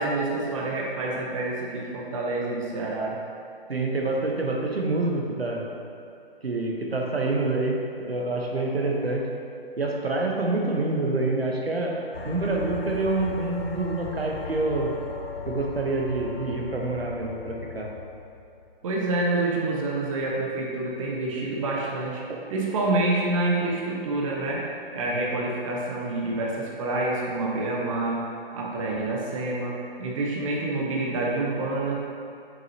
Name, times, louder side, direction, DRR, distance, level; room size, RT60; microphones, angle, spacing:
voice 1, 0.0-3.1 18.8-22.2 22.5-24.6 24.9-28.2 28.5-32.1, right 2 dB, 35° right, -3 dB, 0.9 m, -27 dB
voice 2, 3.7-5.7 6.4-9.3 9.8-14.9 15.4-17.9 22.3-22.4, right 2 dB, 80° right, 0 dB, 1.0 m, -27 dB
sound 1, 12.1-18.8, left 5 dB, 80° left, 0.7 m, -38 dB
6.4 x 6.2 x 2.8 m, 2.6 s
figure-of-eight pair, 130°, 30 cm